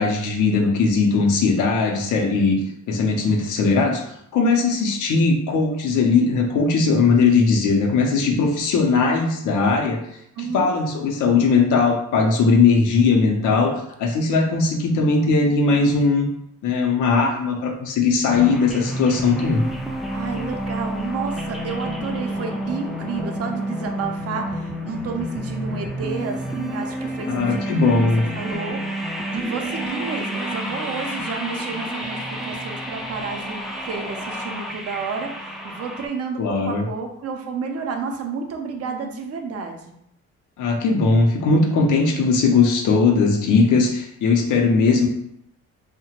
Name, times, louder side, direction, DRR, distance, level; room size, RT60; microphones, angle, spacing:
voice 1, 0.0-2.6 2.9-10.0 10.4-16.3 16.6-19.7 27.3-28.3 36.4-36.9 40.6-45.1, left 4 dB, 85° left, 2 dB, 0.6 m, -19 dB
voice 2, 10.4-10.7 20.1-39.9, right 4 dB, 50° right, 4 dB, 0.5 m, -31 dB
sound 1, 18.3-36.1, right 1 dB, ahead, 0.3 m, -30 dB
2.8 x 2.1 x 2.8 m, 0.74 s
cardioid pair, 90°, 30 cm